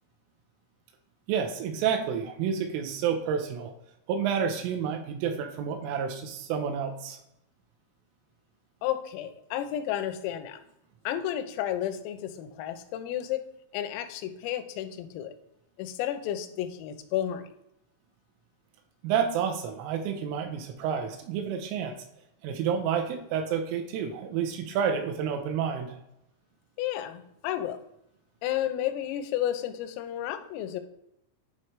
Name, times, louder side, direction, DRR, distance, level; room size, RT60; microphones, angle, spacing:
voice 1, 1.3-3.7 4.1-7.2 19.0-22.0 22.4-26.0, right 7 dB, 85° right, 5 dB, 3.2 m, -29 dB
voice 2, 8.8-10.6 11.1-13.4 13.7-15.3 15.8-17.5 26.8-27.8 28.4-30.8, left 11 dB, 85° left, 9 dB, 3.4 m, -32 dB
11.0 x 4.4 x 3.2 m, 0.82 s
omnidirectional pair, 5.9 m